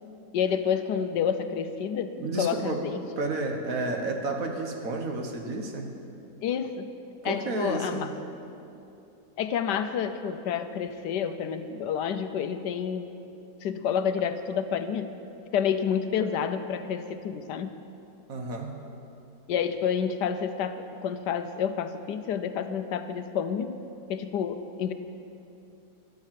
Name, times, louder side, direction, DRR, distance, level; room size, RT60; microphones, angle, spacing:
voice 1, 0.3-2.1 2.4-3.0 6.4-6.9 7.2-8.1 9.4-13.0 13.6-15.1 15.5-17.7 19.5-23.8 24.1-24.9, left 7 dB, 75° left, 9 dB, 1.2 m, -29 dB
voice 2, 2.2-2.8 3.2-5.9 7.2-8.1 18.3-18.7, right 2 dB, 50° right, 3 dB, 1.5 m, -31 dB
12.5 x 11.0 x 7.5 m, 2.7 s
omnidirectional pair, 2.0 m